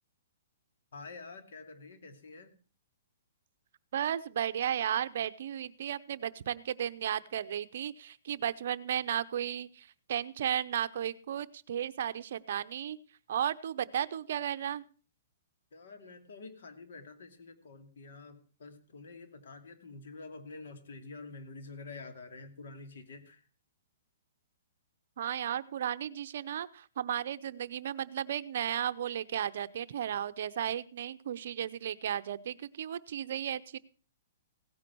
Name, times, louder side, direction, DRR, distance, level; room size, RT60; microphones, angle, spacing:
voice 1, 0.9-2.5 15.7-23.4, left 3 dB, 70° left, 8 dB, 2.6 m, -48 dB
voice 2, 3.9-13.0 13.3-14.8 25.2-33.8, right 10 dB, 55° right, 14 dB, 0.7 m, -34 dB
17.0 x 9.6 x 4.6 m, 0.37 s
hypercardioid pair, 165°, 0 cm